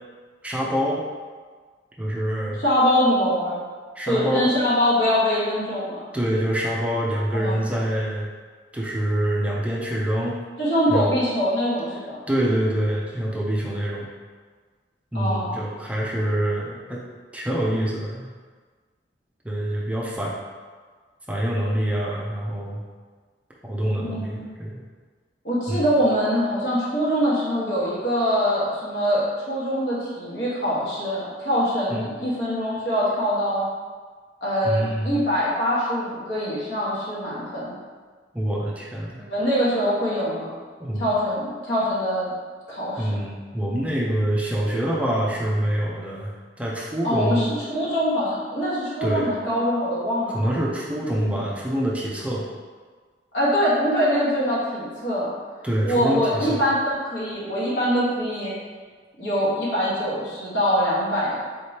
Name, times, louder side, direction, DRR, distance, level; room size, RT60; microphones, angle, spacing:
voice 1, 0.4-1.0 2.0-2.6 4.0-4.5 6.1-8.3 8.7-10.4 10.9-11.1 12.3-14.1 15.1-17.0 17.3-18.3 19.4-20.3 21.3-22.8 23.6-24.8 25.7-25.9 31.9-32.1 34.6-35.2 38.3-39.2 40.8-41.1 43.0-47.5 49.0-49.3 50.3-52.5 55.6-56.6, right 1 dB, 10° right, -4 dB, 0.5 m, -25 dB
voice 2, 2.6-3.6 4.1-6.0 7.3-7.6 10.6-12.2 15.1-15.5 24.0-24.5 25.4-33.7 34.4-37.7 39.1-40.5 41.0-42.3 42.7-43.2 47.0-50.4 53.3-55.3 55.9-58.5 59.2-61.4, equal, 85° left, -8 dB, 1.4 m, -23 dB
4.3 x 3.3 x 2.8 m, 1.5 s
head